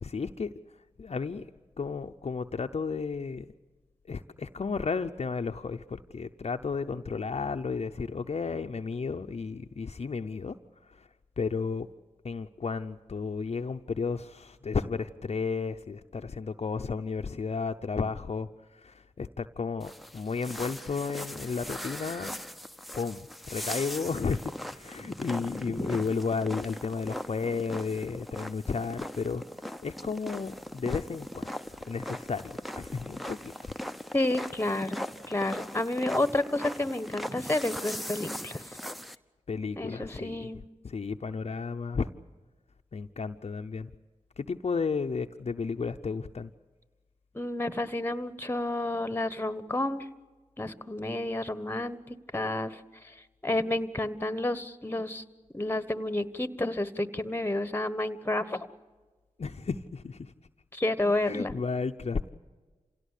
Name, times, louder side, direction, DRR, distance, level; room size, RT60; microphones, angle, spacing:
voice 1, 0.0-0.5 1.0-1.5 1.8-3.5 4.1-10.6 10.9-11.1 11.4-11.9 12.2-22.3 22.9-29.4 29.8-31.5 31.9-33.7 39.5-40.5 40.8-42.1 42.9-43.9 44.4-46.5 59.4-60.3 61.2-62.3, left 5 dB, 55° left, 6 dB, 0.7 m, -33 dB
sound 1, 19.8-39.2, equal, ahead, 0.9 m, -39 dB
voice 2, 34.1-38.6 39.8-40.6 47.3-50.1 50.6-52.8 53.4-55.2 55.5-58.7 60.7-61.5, left 1 dB, 15° left, 13 dB, 1.3 m, -30 dB
27.0 x 17.0 x 8.3 m, 1.3 s
cardioid pair, 50°, 13 cm